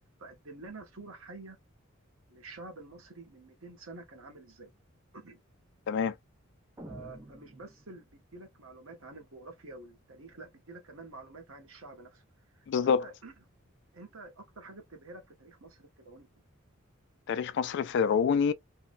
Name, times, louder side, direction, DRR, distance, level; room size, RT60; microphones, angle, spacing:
voice 1, 0.2-1.6 2.3-4.7 5.1-5.4 6.8-12.2 12.5-13.3 13.9-16.3, right 3 dB, 80° right, 1.0 m, -48 dB
sound 1, 6.8-8.4, right 1 dB, 15° right, 0.5 m, -49 dB
voice 2, 12.7-13.0 17.3-18.5, left 6 dB, 60° left, 0.3 m, -26 dB
2.8 x 2.1 x 2.6 m
head